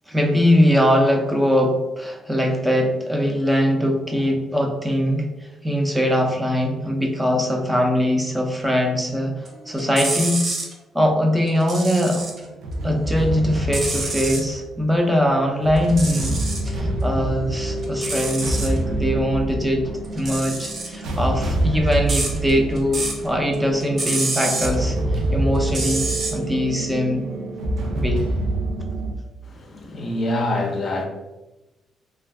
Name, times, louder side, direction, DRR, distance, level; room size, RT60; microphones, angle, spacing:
voice 1, 0.1-5.3 5.6-10.4 10.9-12.3 12.8-16.4 16.7-27.2 28.0-28.2, equal, 10° right, 0.6 m, -21 dB
sound 1, 9.5-10.7 11.5-12.5 12.8-14.5 15.8-16.7 17.1-18.8 20.0-23.3 23.5-24.8 25.6-26.3, right 2 dB, 50° right, 0.7 m, -28 dB
sound 2, 12.2-29.1, right 1 dB, 85° right, 0.5 m, -26 dB
voice 2, 29.4-31.1, left 1 dB, 50° left, 0.5 m, -25 dB
2.4 x 2.4 x 3.3 m
cardioid pair, 90°, 0 cm